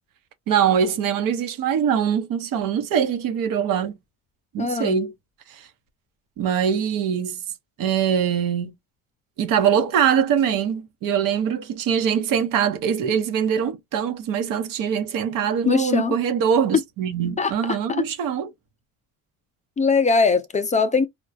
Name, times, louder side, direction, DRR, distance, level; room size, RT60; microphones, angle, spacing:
voice 1, 0.5-4.0 4.5-5.1 5.5-5.7 6.4-7.4 7.8-8.7 9.4-18.5, right 8 dB, 80° right, 1.0 m, -23 dB
voice 2, 4.6-5.0 15.7-16.1 17.4-18.0 19.8-21.1, left 4 dB, 20° left, 0.4 m, -21 dB
4.4 x 2.3 x 2.4 m
cardioid pair, 140°, 33 cm